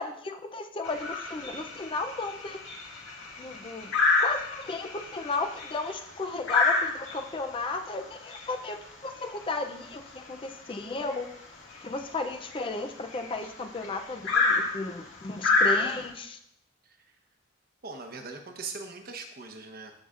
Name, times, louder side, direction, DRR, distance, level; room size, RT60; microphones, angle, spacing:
voice 1, 0.0-2.6 3.4-3.9 4.2-11.3 11.8-16.4, left 3 dB, 25° left, 6 dB, 0.5 m, -34 dB
sound 1, 0.8-16.1, left 3 dB, 80° left, 2.0 m, -30 dB
voice 2, 17.8-19.9, right 4 dB, 50° right, 4 dB, 1.0 m, -40 dB
14.0 x 5.7 x 2.5 m, 0.74 s
head